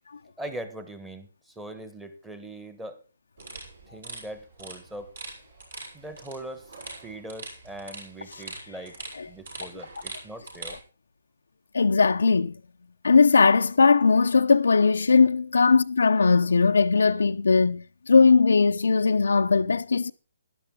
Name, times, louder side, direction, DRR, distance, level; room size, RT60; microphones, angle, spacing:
voice 1, 0.4-3.0 3.9-5.1 5.9-6.7 7.0-9.0 9.3-10.8, right 1 dB, 5° right, 1.3 m, -41 dB
sound 1, 3.4-10.8, right 3 dB, 65° right, 7.3 m, -43 dB
voice 2, 11.7-12.5 13.0-20.1, left 4 dB, 85° left, 0.6 m, -19 dB
12.0 x 11.5 x 3.8 m
hypercardioid pair, 155°, 0 cm